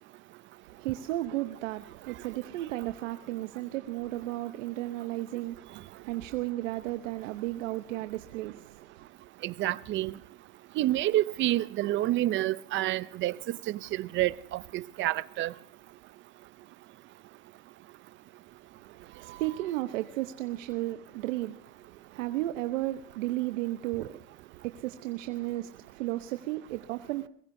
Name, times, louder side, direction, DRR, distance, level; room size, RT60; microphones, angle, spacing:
voice 1, 0.6-9.1 18.8-27.3, right 16 dB, 75° right, 0.9 m, -34 dB
voice 2, 9.4-10.1 10.8-15.5, right 15 dB, 30° right, 0.5 m, -29 dB
22.5 x 21.5 x 2.7 m
supercardioid pair, 125°, 38 cm